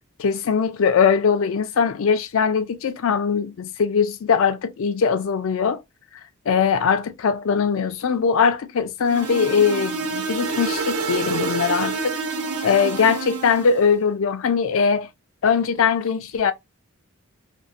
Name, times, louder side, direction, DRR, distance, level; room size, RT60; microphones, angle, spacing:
voice 1, 0.2-5.8 6.5-12.2 12.6-15.1 15.4-16.5, left 6 dB, 60° left, 0.4 m, -21 dB
sound 1, 9.0-13.8, right 4 dB, 80° right, 0.5 m, -27 dB
2.5 x 2.0 x 2.4 m
head